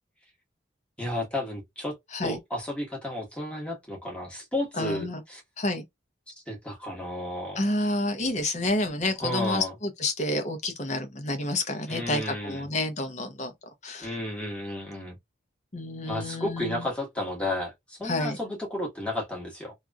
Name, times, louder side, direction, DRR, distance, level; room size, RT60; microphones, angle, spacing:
voice 1, 1.0-1.9 2.2-5.4 6.3-7.6 9.2-9.7 11.9-12.7 14.0-15.2 16.1-19.7, left 1 dB, 5° left, 1.2 m, -32 dB
voice 2, 4.8-5.2 5.6-5.8 7.6-13.5 13.8-14.1 15.7-16.9 18.0-18.4, left 2 dB, 35° left, 0.8 m, -29 dB
2.9 x 2.5 x 2.3 m
head